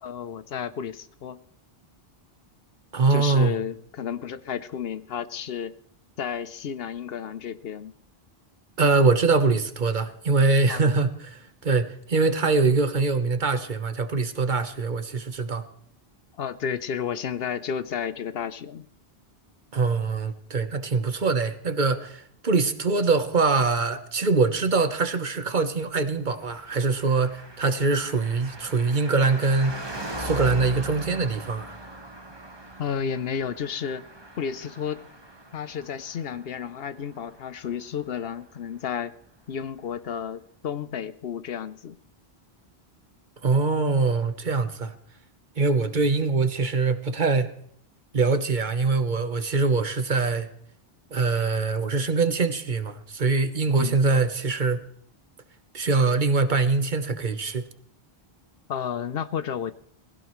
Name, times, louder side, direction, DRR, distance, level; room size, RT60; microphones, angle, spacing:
voice 1, 0.0-1.4 3.1-5.7 6.2-7.9 10.7-10.9 16.4-18.9 32.8-34.0 34.4-35.1 35.5-39.1 39.5-42.0 53.7-54.0 58.7-59.7, left 7 dB, 70° left, 0.9 m, -32 dB
voice 2, 2.9-3.5 8.8-15.7 19.7-29.7 30.2-31.7 43.4-44.9 45.6-47.5 48.1-50.5 51.1-54.8 55.7-57.6, right 4 dB, 50° right, 1.2 m, -23 dB
Car passing by, 26.4-38.3 38.5-38.6, right 1 dB, 25° right, 1.5 m, -40 dB
19.5 x 16.5 x 3.1 m
omnidirectional pair, 1.0 m